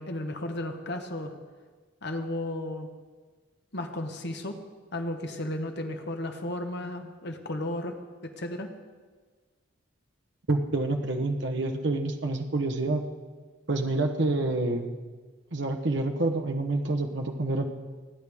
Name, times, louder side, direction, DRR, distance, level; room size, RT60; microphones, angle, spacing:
voice 1, 0.0-1.3 2.0-2.9 3.7-4.6 4.9-8.0 8.2-8.7, left 1 dB, 55° left, 5 dB, 1.3 m, -34 dB
voice 2, 10.5-13.0 13.7-14.9 15.5-17.7, right 2 dB, 60° right, 3 dB, 1.1 m, -27 dB
30.0 x 10.0 x 3.6 m, 1.4 s
head